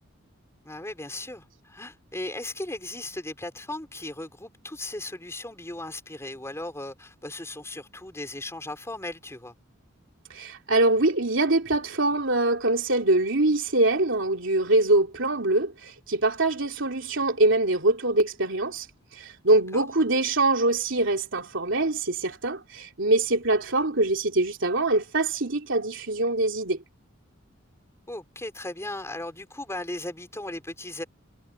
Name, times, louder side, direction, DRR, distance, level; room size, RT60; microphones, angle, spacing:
voice 1, 0.6-9.5 19.5-19.9 28.1-31.0, left 1 dB, 15° left, 4.5 m, -37 dB
voice 2, 10.3-18.9 19.1-26.8, right 2 dB, 65° right, 3.5 m, -24 dB
head